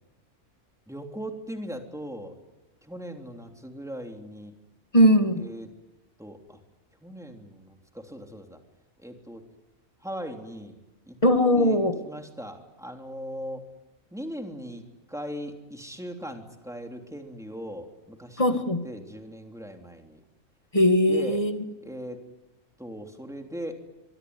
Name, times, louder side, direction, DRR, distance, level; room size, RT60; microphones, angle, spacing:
voice 1, 0.9-2.4 2.8-4.5 5.4-5.7 6.2-6.6 7.0-8.6 9.0-9.4 10.0-10.8 11.1-11.2 11.5-11.8 12.0-13.6 14.1-14.8 15.1-18.4 18.8-20.2 21.1-21.4 21.8-22.2 22.8-23.7, equal, ahead, 3 dB, 3.3 m, -39 dB
voice 2, 4.9-5.4 11.2-11.9 18.4-18.8 20.7-21.6, equal, 25° left, 7 dB, 2.2 m, -20 dB
24.5 x 23.5 x 9.7 m, 1.0 s
omnidirectional pair, 1.4 m